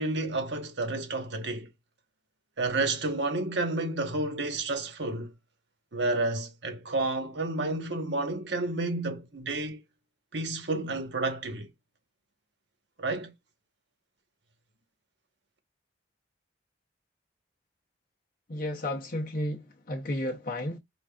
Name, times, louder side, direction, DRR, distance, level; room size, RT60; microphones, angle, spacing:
voice 1, 0.0-1.7 2.6-5.3 5.9-9.8 10.3-11.7 13.0-13.3, right 2 dB, 75° right, 1.1 m, -30 dB
voice 2, 18.5-20.8, left 1 dB, 50° left, 0.7 m, -32 dB
5.3 x 2.4 x 2.3 m
head